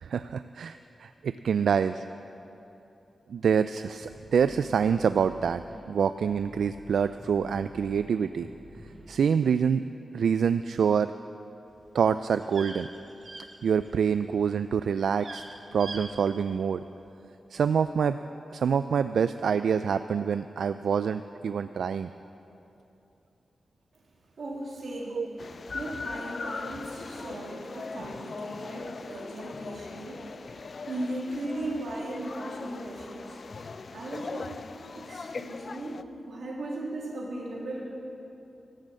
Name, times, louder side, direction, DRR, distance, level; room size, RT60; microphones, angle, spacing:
voice 1, 0.0-2.0 3.3-5.6 5.9-8.5 9.1-9.8 10.1-11.1 11.9-12.9 13.6-15.4 15.7-16.8 17.5-18.2 18.5-22.1 25.1-25.3, right 7 dB, 85° right, 11 dB, 0.3 m, -26 dB
sound 1, 4.0-5.8 6.2-9.1, right 1 dB, 5° right, 2.7 m, -49 dB
sound 2, 11.7-14.1 14.4-14.8 15.1-15.4 15.8-16.0 16.3-16.4, right 2 dB, 35° right, 1.5 m, -42 dB
voice 2, 24.4-25.2 25.7-30.4 30.9-33.4 33.9-34.6 34.9-37.8, right 1 dB, 60° right, -3 dB, 3.1 m, -37 dB
sound 3, 25.4-36.0, left 4 dB, 40° left, 0.3 m, -40 dB
14.5 x 12.0 x 7.5 m, 2.9 s
wide cardioid pair, 175°, 0 cm